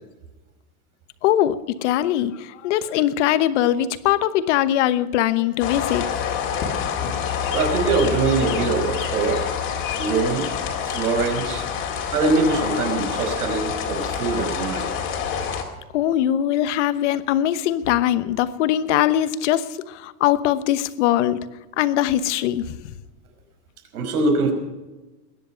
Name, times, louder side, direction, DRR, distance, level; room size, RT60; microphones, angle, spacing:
voice 1, 1.2-6.1 7.2-7.4 15.9-21.5 21.8-22.9, left 12 dB, 55° left, 13 dB, 1.1 m, -21 dB
sound 1, 5.6-15.6, left 7 dB, 25° left, 2.2 m, -27 dB
voice 2, 7.5-9.4 10.0-10.5 10.8-11.6 12.1-14.9 23.9-24.5, right 4 dB, 85° right, 5 dB, 5.3 m, -23 dB
21.5 x 10.0 x 5.8 m, 1.1 s
supercardioid pair, 175°, 44 cm